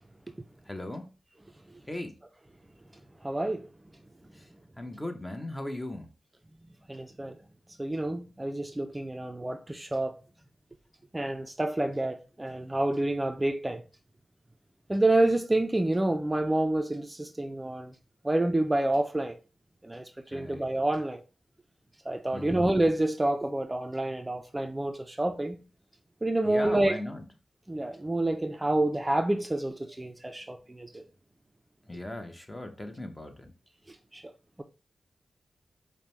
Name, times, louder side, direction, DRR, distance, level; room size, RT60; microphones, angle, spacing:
voice 1, 0.7-1.1 1.9-2.2 4.3-4.5 4.8-6.1 20.3-20.6 22.3-22.6 26.4-27.2 31.9-33.5, left 1 dB, 20° left, 0.8 m, -38 dB
voice 2, 3.2-3.7 6.9-7.4 7.8-10.2 11.1-13.8 14.9-17.9 18.2-19.4 19.8-21.2 22.1-25.6 26.2-27.0 27.7-31.1 33.9-34.2 34.6-34.7, right 1 dB, 20° right, 0.4 m, -28 dB
5.1 x 2.1 x 3.1 m
cardioid pair, 45°, 0 cm